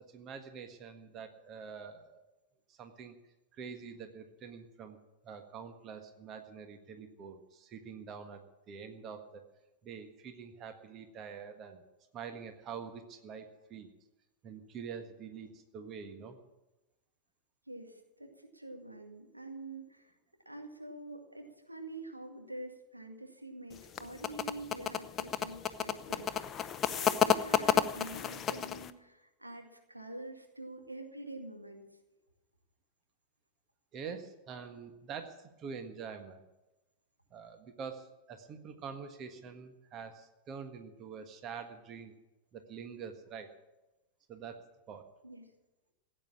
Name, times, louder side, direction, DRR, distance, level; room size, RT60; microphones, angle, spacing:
voice 1, 0.1-2.2 2.7-3.1 3.5-5.0 5.2-9.4 9.8-11.8 12.1-13.9 14.4-16.4 33.9-36.4 37.3-42.1 42.5-43.5 44.3-45.0, right 6 dB, 35° right, 7 dB, 1.6 m, -46 dB
voice 2, 17.7-20.1 20.5-31.8 45.2-45.5, right 1 dB, 85° right, 4 dB, 2.1 m, -46 dB
sound 1, 23.7-28.9, left 9 dB, 25° left, 0.7 m, -31 dB
16.0 x 8.9 x 8.6 m, 1.0 s
figure-of-eight pair, 90°, 0 cm